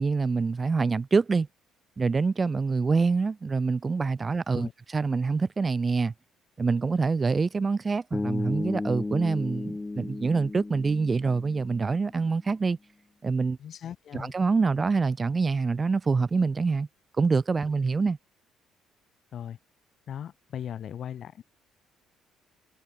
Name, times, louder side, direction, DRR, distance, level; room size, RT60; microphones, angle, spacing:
voice 1, 0.0-1.5 2.0-6.1 6.6-12.8 13.2-13.6 14.1-16.9 17.2-18.2, right 4 dB, 35° right, 0.6 m, -25 dB
Bass guitar, 8.1-12.2, left 2 dB, 20° left, 0.9 m, -34 dB
voice 2, 13.6-14.3 19.3-19.6 20.1-21.4, left 9 dB, 60° left, 1.9 m, -38 dB
supercardioid pair, 60°, 0 cm